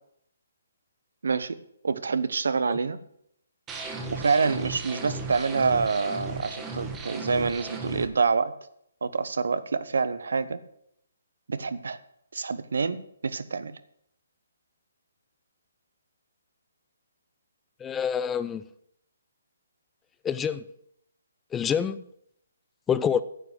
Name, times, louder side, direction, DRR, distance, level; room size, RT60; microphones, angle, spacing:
voice 1, 1.2-3.0 4.1-8.5 9.0-10.6 11.5-12.0 12.3-13.8, right 4 dB, 70° right, 14 dB, 0.9 m, -27 dB
sound 1, 3.7-8.1, right 3 dB, 15° right, 1.5 m, -36 dB
voice 2, 17.8-18.6 20.2-20.6 21.5-22.0 22.9-23.2, left 7 dB, 10° left, 13 dB, 0.4 m, -26 dB
9.8 x 7.7 x 7.8 m, 0.72 s
figure-of-eight pair, 140°, 0 cm